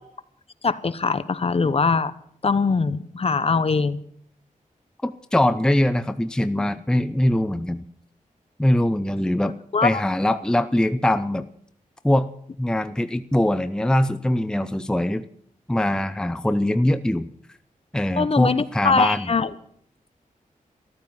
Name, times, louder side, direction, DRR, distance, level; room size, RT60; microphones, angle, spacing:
voice 1, 0.6-2.1 2.4-4.0 9.7-10.0 18.2-19.5, left 4 dB, 45° left, 14 dB, 1.0 m, -22 dB
voice 2, 5.0-7.8 8.6-9.5 9.8-11.4 12.0-12.3 12.6-15.2 15.7-17.3 17.9-19.3, left 1 dB, 5° left, 11 dB, 0.6 m, -22 dB
14.5 x 13.5 x 7.2 m, 0.64 s
wide cardioid pair, 115°, 14 cm